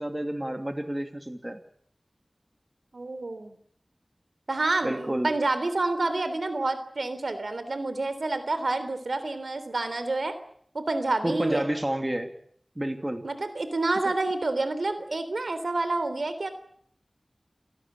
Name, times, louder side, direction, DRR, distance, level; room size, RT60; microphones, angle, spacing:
voice 1, 0.0-1.6 4.8-5.3 11.2-12.3 12.8-13.2 14.0-14.1, right 1 dB, 20° right, 7 dB, 2.7 m, -30 dB
voice 2, 2.9-3.6 4.5-10.3 10.7-11.7 13.2-16.5, right 2 dB, 80° right, 12 dB, 3.4 m, -28 dB
28.0 x 18.0 x 8.7 m, 0.64 s
wide cardioid pair, 60°, 0 cm